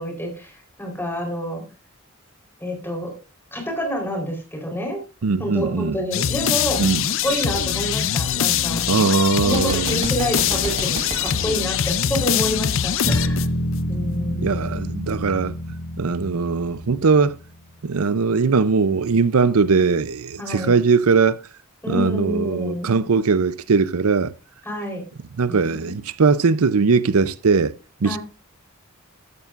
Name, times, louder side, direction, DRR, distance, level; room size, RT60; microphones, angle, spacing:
voice 1, 0.0-1.6 2.6-3.1 3.5-5.0 5.4-8.8 9.4-13.5 13.9-14.8 20.4-20.7 21.8-23.0 24.6-25.0 25.5-25.9 28.0-28.2, equal, 10° left, 4.0 m, -28 dB
voice 2, 5.2-6.0 6.8-7.0 8.9-10.0 14.3-15.6 16.0-17.4 17.8-21.4 21.9-24.3 25.4-27.7 28.0-28.2, right 4 dB, 80° right, 0.6 m, -20 dB
sound 1, 6.1-13.8, left 9 dB, 60° left, 0.6 m, -23 dB
Gunshot gunfire, 9.4-12.5, right 3 dB, 30° right, 0.8 m, -33 dB
Bass guitar, 13.0-17.4, equal, 35° left, 6.2 m, -27 dB
14.0 x 12.0 x 2.5 m
head